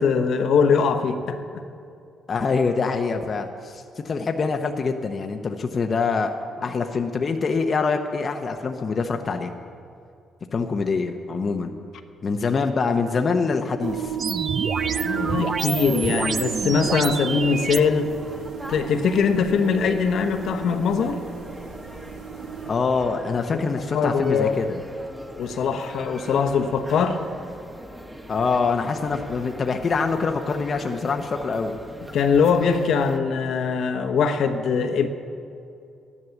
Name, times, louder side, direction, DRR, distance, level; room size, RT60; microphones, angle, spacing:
voice 1, 0.0-1.4 15.0-18.1 18.7-21.2 23.5-24.6 25.4-27.2 32.1-35.1, left 5 dB, 70° left, 6 dB, 1.1 m, -22 dB
voice 2, 2.3-6.3 6.6-9.5 10.5-11.8 12.2-14.2 22.7-24.8 28.3-31.8, left 4 dB, 40° left, 5 dB, 0.8 m, -25 dB
sound 1, 13.8-22.7, right 10 dB, 90° right, 1.1 m, -34 dB
sound 2, 14.2-17.8, right 5 dB, 40° right, 0.4 m, -27 dB
sound 3, 14.8-33.2, equal, 5° right, 1.3 m, -41 dB
12.5 x 11.0 x 7.1 m, 2.5 s
cardioid pair, 90°, 0 cm